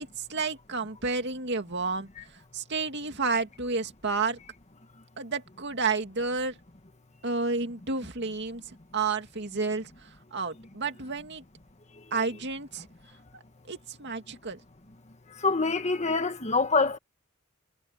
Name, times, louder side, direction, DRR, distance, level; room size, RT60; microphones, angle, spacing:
voice 1, 0.2-2.1 2.5-4.4 5.2-6.6 7.2-11.4 12.1-12.9 13.3-14.6, right 4 dB, 55° right, 2.3 m, -31 dB
voice 2, 15.4-17.0, left 3 dB, 35° left, 1.6 m, -25 dB
head